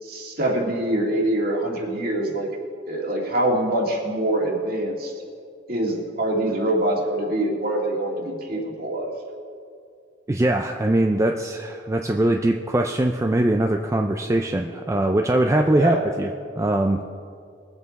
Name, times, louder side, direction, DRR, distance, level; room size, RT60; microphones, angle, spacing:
voice 1, 0.0-2.5 2.9-5.1 5.7-9.1 15.7-16.0, right 1 dB, 55° right, -1 dB, 2.2 m, -24 dB
voice 2, 10.3-17.0, right 1 dB, 15° right, 3 dB, 0.4 m, -22 dB
21.5 x 8.0 x 4.1 m, 2.3 s
head